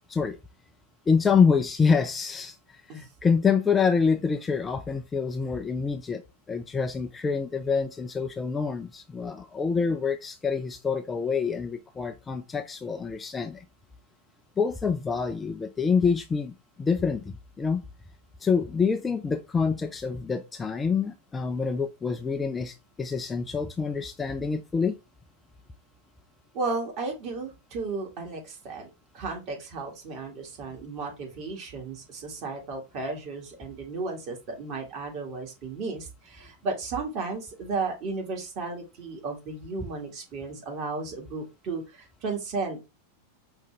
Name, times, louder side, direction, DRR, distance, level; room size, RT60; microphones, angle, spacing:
voice 1, 1.1-6.2 6.5-13.6 14.6-17.8 18.4-24.9, left 5 dB, 15° left, 0.4 m, -26 dB
voice 2, 26.5-42.8, right 3 dB, 40° right, 1.6 m, -34 dB
5.1 x 2.7 x 3.3 m
figure-of-eight pair, 90°, 0 cm